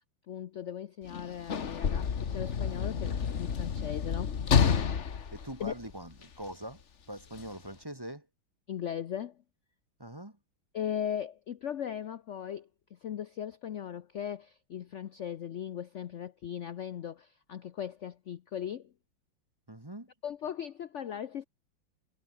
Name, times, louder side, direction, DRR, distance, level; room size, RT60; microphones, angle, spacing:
voice 1, 0.3-4.3 5.6-5.7 8.7-9.4 10.7-18.9 20.2-21.4, left 9 dB, 70° left, 0.7 m, -38 dB
Sliding door / Slam, 1.0-6.4 7.3-7.5, left 6 dB, 40° left, 1.3 m, -30 dB
voice 2, 5.3-6.8 7.1-8.3 10.0-10.4 19.7-20.1, right 1 dB, 10° right, 1.6 m, -42 dB
omnidirectional pair, 2.2 m